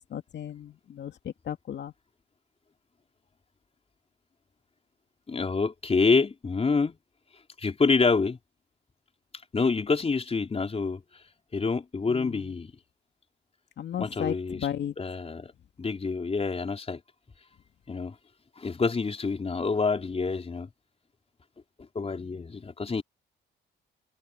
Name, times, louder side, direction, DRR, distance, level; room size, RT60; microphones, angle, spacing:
voice 1, 0.1-1.9 12.1-12.5 13.8-14.9 22.2-22.5, left 9 dB, 60° left, 2.5 m, -35 dB
voice 2, 5.3-7.0 7.6-8.4 9.5-11.0 11.5-12.7 14.0-14.7 15.0-15.5 15.8-17.0 17.9-18.1 18.6-20.7 21.9-23.0, left 4 dB, 30° left, 4.4 m, -27 dB
cardioid pair, 90°, 20 cm